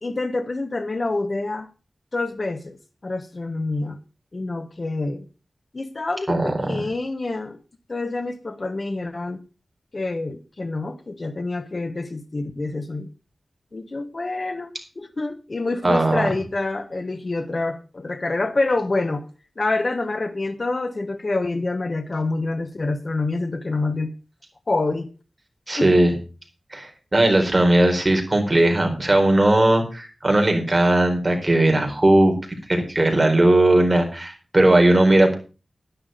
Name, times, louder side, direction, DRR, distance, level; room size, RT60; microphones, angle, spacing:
voice 1, 0.0-1.7 2.1-2.8 3.0-4.0 4.3-5.2 5.7-7.6 7.9-9.4 9.9-13.1 13.7-19.3 19.6-24.1 24.7-25.1 25.8-26.0, left 2 dB, 40° left, 1.1 m, -27 dB
voice 2, 6.3-6.8 15.8-16.3 25.7-26.1 26.7-32.3 32.7-35.4, right 1 dB, 25° right, 4.3 m, -18 dB
11.0 x 10.0 x 5.1 m
wide cardioid pair, 105°, 0 cm